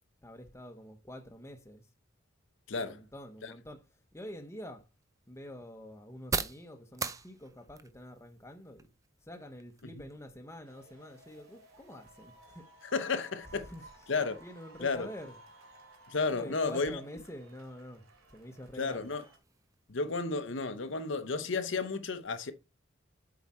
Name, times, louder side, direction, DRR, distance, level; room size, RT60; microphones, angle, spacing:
voice 1, 0.2-1.8 2.8-3.8 4.1-4.9 5.3-8.9 9.2-12.9 13.5-13.9 14.4-15.4 16.3-18.0 18.3-19.1, equal, 15° left, 1.0 m, -47 dB
voice 2, 2.7-3.0 3.4-3.5 12.9-13.7 14.1-14.4 14.8-15.1 16.1-17.0 18.8-19.2 19.9-22.5, left 4 dB, 60° left, 0.8 m, -32 dB
sound 1, 4.2-21.8, right 4 dB, 15° right, 0.5 m, -46 dB
sound 2, 10.6-19.4, right 1 dB, 90° right, 2.9 m, -58 dB
8.0 x 4.8 x 4.3 m
head